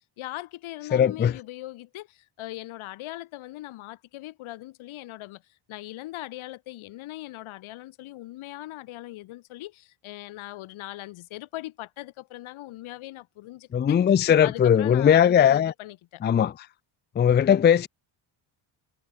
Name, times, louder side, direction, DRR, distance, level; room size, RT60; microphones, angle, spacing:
voice 1, 0.2-5.4 5.7-14.0 14.4-16.2, left 16 dB, 90° left, 5.6 m, -40 dB
voice 2, 0.9-1.4 13.7-15.7 16.2-16.7 17.2-17.9, left 9 dB, 25° left, 0.5 m, -19 dB
cardioid pair, 170°, 47 cm